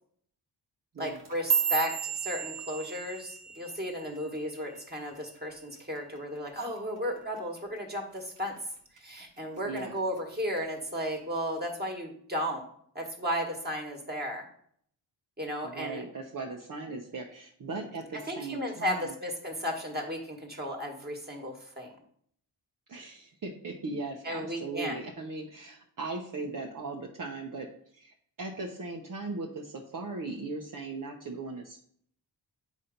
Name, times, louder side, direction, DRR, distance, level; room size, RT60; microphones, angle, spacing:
voice 1, 1.0-8.5 9.0-12.6 12.9-14.4 15.4-16.0 18.3-21.9 24.2-25.0, equal, 20° right, 0 dB, 1.6 m, -34 dB
sound 1, 1.1-5.5 5.8-6.2 6.6-7.0 7.4-7.6 8.2-8.6 9.0-9.8 10.2-10.6 11.4-11.5, right 8 dB, 90° right, 1.5 m, -33 dB
voice 2, 9.6-9.9 15.6-19.1 22.9-27.7 27.9-31.8, right 3 dB, 50° right, 0 dB, 0.8 m, -38 dB
8.3 x 2.9 x 5.2 m, 0.64 s
cardioid pair, 65°, 43 cm